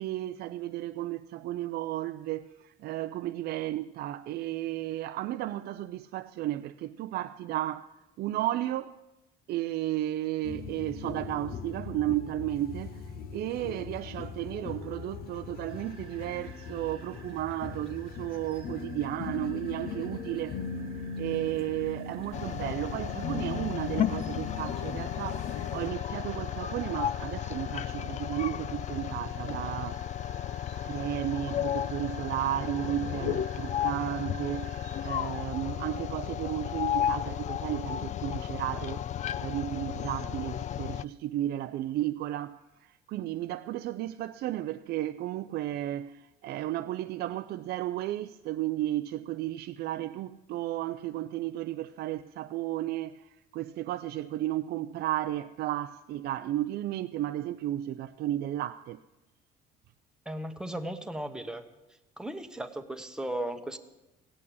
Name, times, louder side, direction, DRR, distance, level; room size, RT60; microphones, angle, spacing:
voice 1, 0.0-9.0 9.5-20.6 21.0-30.0 30.8-39.0 39.4-59.0, right 14 dB, 70° right, 0.5 m, -33 dB
sound 1, 10.4-25.9, left 6 dB, 65° left, 1.0 m, -40 dB
sound 2, 15.7-35.1, right 5 dB, 30° right, 1.3 m, -53 dB
sound 3, 22.3-41.1, left 10 dB, 45° left, 0.4 m, -33 dB
voice 2, 60.3-61.7 62.2-63.8, right 1 dB, 5° right, 1.1 m, -36 dB
16.0 x 8.6 x 8.5 m
cardioid pair, 110°, 17 cm